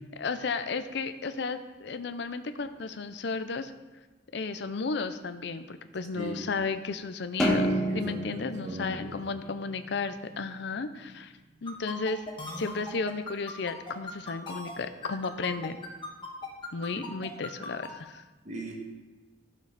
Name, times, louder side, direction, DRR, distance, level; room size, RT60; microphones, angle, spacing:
voice 1, 0.1-3.7 4.3-11.3 11.6-12.2 12.6-15.9 16.7-18.2, left 4 dB, 65° left, 10 dB, 0.6 m, -34 dB
voice 2, 6.1-6.4 7.9-9.2 16.9-17.1 18.4-18.7, equal, 40° right, -1 dB, 1.6 m, -38 dB
sound 1, 7.4-10.0, equal, 5° left, 1.3 m, -29 dB
sound 2, 11.7-17.9, left 3 dB, 25° left, 1.4 m, -39 dB
12.5 x 6.3 x 4.1 m, 1.2 s
head